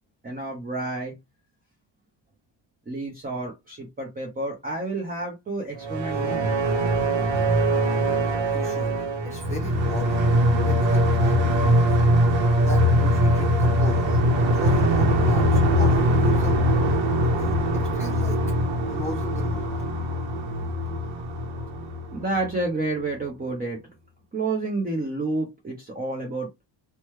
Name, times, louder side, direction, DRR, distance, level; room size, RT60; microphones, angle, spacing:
voice 1, 0.2-1.1 2.9-6.5 22.1-23.8 24.3-26.5, right 2 dB, 20° right, 0.7 m, -29 dB
sound 1, 5.8-22.6, equal, 70° right, 0.8 m, -22 dB
voice 2, 8.5-10.3 10.6-12.0 12.6-14.2 14.5-16.7 17.2-18.4 18.8-19.7 20.3-20.9, left 1 dB, 15° left, 1.6 m, -35 dB
3.0 x 2.2 x 3.1 m
cardioid pair, 145°, 47 cm